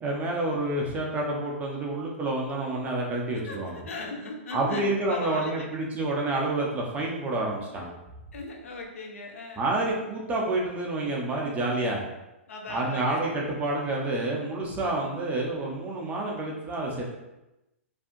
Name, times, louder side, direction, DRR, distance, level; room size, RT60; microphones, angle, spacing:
voice 1, 0.0-3.8 4.5-7.9 9.6-12.0 12.7-17.2, right 2 dB, 20° right, -2 dB, 0.8 m, -28 dB
voice 2, 3.3-5.7 8.3-9.7 12.5-13.3, left 3 dB, 80° left, 2 dB, 0.8 m, -38 dB
4.6 x 2.8 x 2.6 m, 0.96 s
hypercardioid pair, 120°, 7 cm